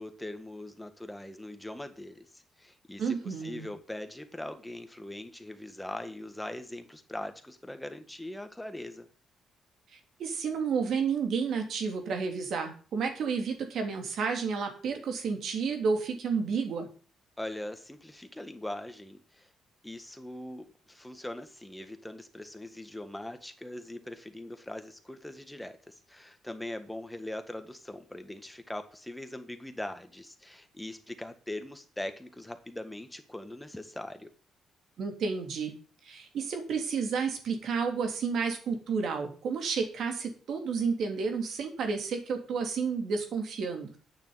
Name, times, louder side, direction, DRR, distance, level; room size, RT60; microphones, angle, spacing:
voice 1, 0.0-9.1 17.4-19.5 19.8-34.3, left 1 dB, 5° left, 8 dB, 1.8 m, -41 dB
voice 2, 3.0-3.7 10.2-16.9 35.0-35.7 36.0-43.9, right 5 dB, 70° right, 4 dB, 3.3 m, -31 dB
9.2 x 6.7 x 8.1 m, 0.39 s
cardioid pair, 90°, 0 cm